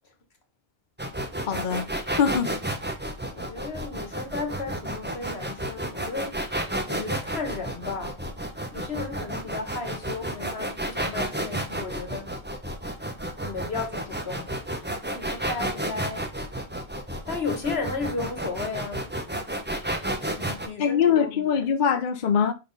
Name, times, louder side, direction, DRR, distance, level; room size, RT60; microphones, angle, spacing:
sound 1, 1.0-20.7, right 1 dB, 10° right, 1.0 m, -31 dB
voice 1, 1.5-1.8 2.2-2.5 20.8-22.5, left 7 dB, 55° left, 0.8 m, -22 dB
voice 2, 3.3-8.3 8.7-12.3 13.4-16.3 17.3-19.1 20.3-21.7, left 4 dB, 75° left, 1.7 m, -34 dB
5.5 x 4.5 x 5.2 m
omnidirectional pair, 1.1 m